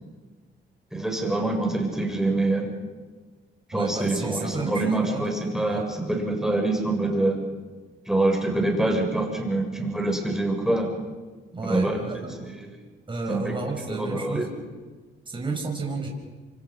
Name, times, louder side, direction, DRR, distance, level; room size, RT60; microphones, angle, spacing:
voice 1, 0.9-2.7 3.7-7.4 8.1-10.9 11.6-12.0 12.5-12.7 13.3-13.5 13.9-14.5, right 2 dB, ahead, 1 dB, 7.6 m, -25 dB
voice 2, 3.7-5.2 5.7-5.8 11.5-12.5 13.1-14.5 15.3-16.1, right 3 dB, 25° right, 0 dB, 6.2 m, -31 dB
29.0 x 25.0 x 5.7 m, 1.3 s
cardioid pair, 90°, 20 cm